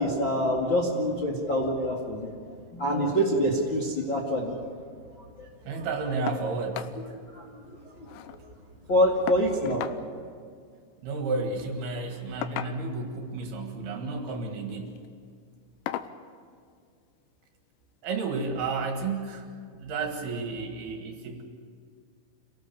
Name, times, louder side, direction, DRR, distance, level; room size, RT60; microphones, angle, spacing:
voice 1, 0.0-2.3 2.7-4.6 5.4-5.5 7.3-7.6 8.9-9.8, equal, 40° left, -2 dB, 1.8 m, -25 dB
voice 2, 5.7-6.9 11.0-15.0 18.0-19.5 19.7-21.4, right 3 dB, 60° right, 3 dB, 3.3 m, -32 dB
sound 1, 6.3-6.5 6.7-7.0 7.3-7.4 7.7-8.4 9.3-10.0 11.3-11.5 12.4-13.1 14.1-14.4 14.9-15.1 15.9-16.2 17.4-17.5 18.0-18.1, left 11 dB, 80° left, 2.8 m, -36 dB
27.5 x 18.0 x 7.0 m, 2.1 s
omnidirectional pair, 5.6 m